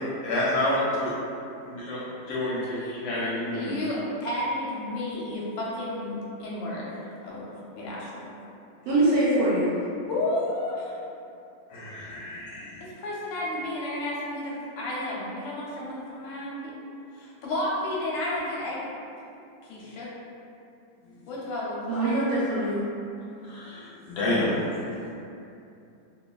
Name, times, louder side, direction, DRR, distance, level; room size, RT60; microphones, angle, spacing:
voice 1, 0.2-1.1 1.7-3.8 11.7-13.0 21.0-21.2 23.4-25.1, left 1 dB, 70° left, -7 dB, 1.0 m, -29 dB
voice 2, 3.5-8.3 10.0-11.0 12.8-16.7 17.1-18.8 19.6-20.1 21.3-22.1, left 1 dB, 90° left, -6 dB, 1.4 m, -32 dB
voice 3, 8.9-9.7 21.9-22.8, right 1 dB, 70° right, -9 dB, 0.9 m, -23 dB
3.0 x 2.2 x 2.3 m, 2.7 s
omnidirectional pair, 2.0 m